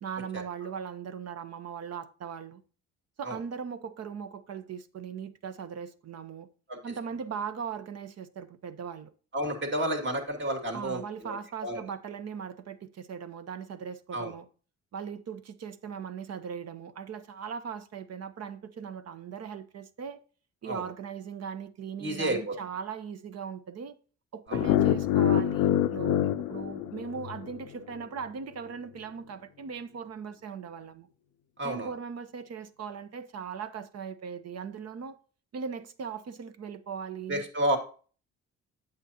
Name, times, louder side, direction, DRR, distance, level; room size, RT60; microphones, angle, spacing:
voice 1, 0.0-2.6 3.2-6.5 6.8-9.1 10.7-14.4 14.9-20.2 20.6-23.9 24.3-31.1 31.6-35.2 35.5-37.5, right 7 dB, 55° right, 1.0 m, -39 dB
voice 2, 9.3-11.4 11.6-11.8 14.1-14.3 20.6-20.8 22.0-22.5 24.5-24.6 31.6-31.9 37.3-37.8, right 1 dB, 40° right, 2.6 m, -30 dB
sound 1, 24.5-27.6, left 11 dB, 85° left, 0.5 m, -26 dB
8.8 x 7.6 x 2.9 m
cardioid pair, 90°, 30 cm